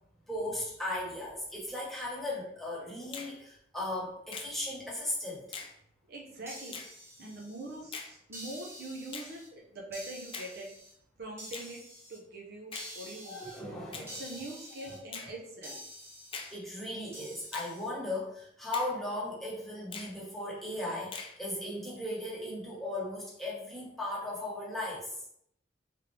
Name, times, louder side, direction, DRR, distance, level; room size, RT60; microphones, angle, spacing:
voice 1, 0.3-5.4 13.2-14.2 14.8-15.0 16.5-25.1, left 1 dB, ahead, -7 dB, 1.3 m, -37 dB
Finger snapping, 3.1-3.3 4.3-4.5 5.5-5.7 6.7-6.9 7.9-8.1 9.1-9.3 10.3-10.5 11.5-11.7 12.7-12.9 13.9-14.1 15.1-15.3 16.3-16.6 17.5-17.7 18.7-18.9 19.9-20.1 21.1-21.4, left 5 dB, 30° left, 0.5 m, -42 dB
voice 2, 6.1-6.8 7.2-9.4 9.7-10.7 11.2-11.8 12.1-13.5 13.9-15.8, right 2 dB, 55° right, -1 dB, 0.7 m, -43 dB
sound 1, 6.5-7.8 8.3-9.5 9.9-10.9 11.4-12.2 12.7-13.6 14.1-15.0 15.6-16.6 17.1-17.9, equal, 15° right, 0.8 m, -48 dB
3.6 x 3.3 x 3.3 m, 0.72 s
head